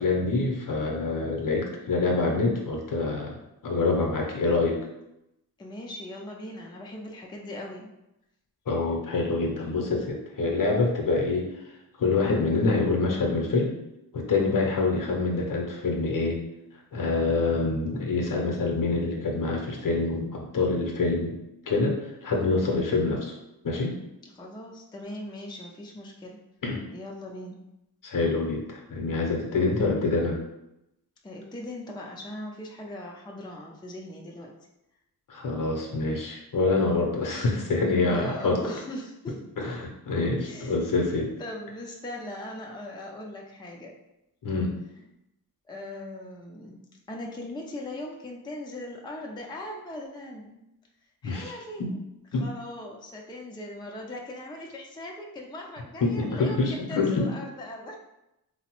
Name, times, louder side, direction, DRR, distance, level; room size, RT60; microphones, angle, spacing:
voice 1, 0.0-3.4 3.6-4.8 8.7-11.5 12.0-13.7 14.1-16.4 16.9-21.3 21.7-21.9 22.2-23.3 23.6-24.0 26.6-26.8 28.0-30.4 35.3-38.6 39.6-41.3 44.4-44.8 51.2-51.5 51.8-51.9 52.3-52.5 56.0-57.3, left 3 dB, 55° left, 1 dB, 0.7 m, -26 dB
voice 2, 5.6-7.9 24.2-26.4 26.9-27.6 31.2-34.5 38.1-39.4 40.4-40.8 41.4-43.9 45.7-46.8 47.1-50.6 51.2-52.0 52.3-58.0, left 1 dB, 10° left, 0 dB, 0.4 m, -39 dB
3.1 x 2.0 x 2.9 m, 0.87 s
cardioid pair, 65°, 38 cm